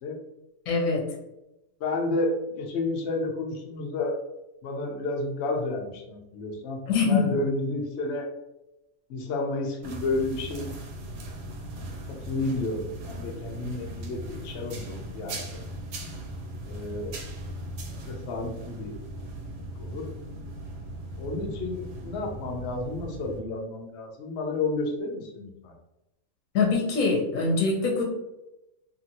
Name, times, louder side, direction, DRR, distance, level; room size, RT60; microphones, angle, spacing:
voice 1, 0.7-1.1 6.9-7.3 26.5-28.0, left 4 dB, 60° left, -1 dB, 0.9 m, -23 dB
voice 2, 1.8-4.2 4.6-8.3 9.1-10.7 12.1-15.6 16.7-17.2 17.9-19.0 19.5-20.1 21.2-25.7, left 2 dB, 80° left, 2 dB, 0.5 m, -31 dB
sound 1, 9.8-23.4, right 1 dB, 75° right, 1.1 m, -38 dB
2.8 x 2.7 x 2.7 m, 0.92 s
omnidirectional pair, 1.8 m